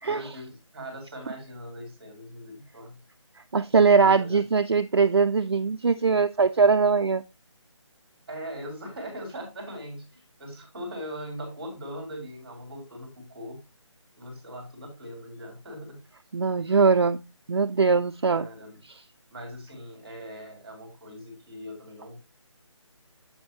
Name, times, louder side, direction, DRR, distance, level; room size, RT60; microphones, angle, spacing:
voice 1, 0.0-3.0 4.0-4.4 8.3-13.6 14.2-16.0 18.3-18.8 19.3-22.2, equal, 15° right, 3.8 m, -40 dB
voice 2, 3.5-7.2 16.3-17.2 17.5-18.5, right 5 dB, 55° right, 0.4 m, -21 dB
8.0 x 7.8 x 2.8 m
figure-of-eight pair, 175°, 16 cm